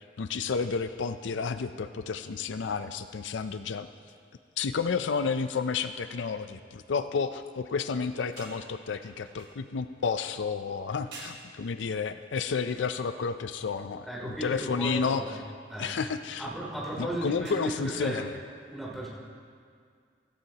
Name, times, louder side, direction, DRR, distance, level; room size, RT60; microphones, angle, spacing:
voice 1, 0.2-3.9 4.6-15.2 15.8-16.5 17.0-18.3, left 5 dB, 85° left, 11 dB, 0.4 m, -31 dB
sound 1, 4.1-4.3 4.6-4.7 5.0-5.3 7.9-10.1 10.7-10.8 11.1-11.5 12.6-13.8 14.3-14.5 16.9-17.5, right 3 dB, 85° right, 2.6 m, -51 dB
voice 2, 14.1-15.3 15.7-15.9 16.4-18.2 18.7-19.1, right 1 dB, ahead, -6 dB, 3.0 m, -35 dB
15.0 x 15.0 x 2.9 m, 2.1 s
head